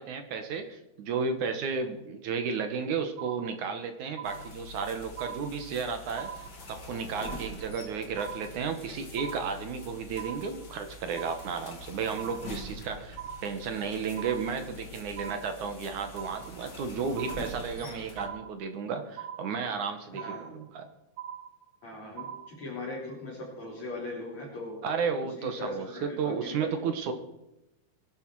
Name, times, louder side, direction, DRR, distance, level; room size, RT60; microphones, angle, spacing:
voice 1, 0.0-6.3 6.7-20.9 24.8-27.1, right 5 dB, 65° right, 7 dB, 2.4 m, -33 dB
sound 1, 3.2-3.8 4.2-4.8 5.2-5.8 6.2-6.8 7.2-7.8 8.2-8.8 9.2-9.8 10.2-10.8 11.2-11.8 12.2-12.8 13.2-13.8 14.2-14.8 15.2-15.8 16.2-16.8 17.2-17.8 18.2-18.8 19.2-19.8 20.2-20.8 21.2-21.8 22.2-22.8, right 9 dB, 80° right, 2.9 m, -42 dB
sound 2, 4.2-18.3, left 2 dB, 35° left, 2.2 m, -45 dB
voice 2, 20.1-20.5 21.8-24.8 25.2-26.7, left 2 dB, 50° left, -6 dB, 5.0 m, -40 dB
22.0 x 11.5 x 4.7 m, 0.94 s
omnidirectional pair, 4.3 m